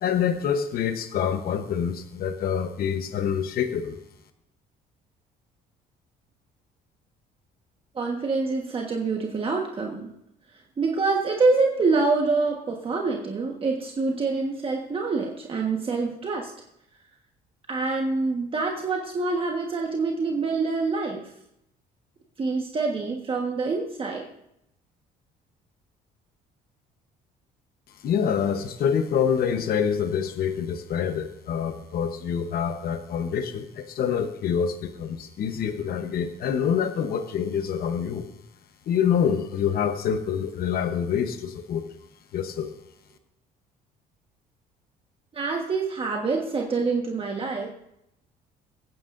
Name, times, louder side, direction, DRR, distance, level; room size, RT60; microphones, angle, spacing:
voice 1, 0.0-4.0 28.0-38.3 38.9-41.8 42.3-42.7, left 7 dB, 60° left, 7 dB, 1.1 m, -26 dB
voice 2, 7.9-10.1 10.8-16.5 17.7-21.2 22.4-24.3 45.3-47.7, right 3 dB, 30° right, 0 dB, 1.4 m, -26 dB
23.5 x 9.6 x 2.6 m, 0.79 s
cardioid pair, 110°, 17 cm